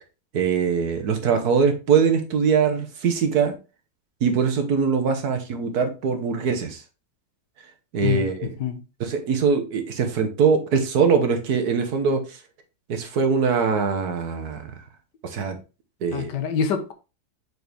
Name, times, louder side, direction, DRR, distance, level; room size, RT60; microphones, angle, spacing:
voice 1, 0.3-3.5 4.2-6.8 7.9-8.5 9.0-12.4 12.9-14.7 15.2-15.6 16.0-16.3, right 6 dB, 65° right, 1.6 m, -22 dB
voice 2, 8.0-8.3 8.6-8.8 15.4-15.5 16.1-16.9, left 7 dB, 90° left, 1.6 m, -25 dB
6.5 x 4.5 x 3.4 m
omnidirectional pair, 1.8 m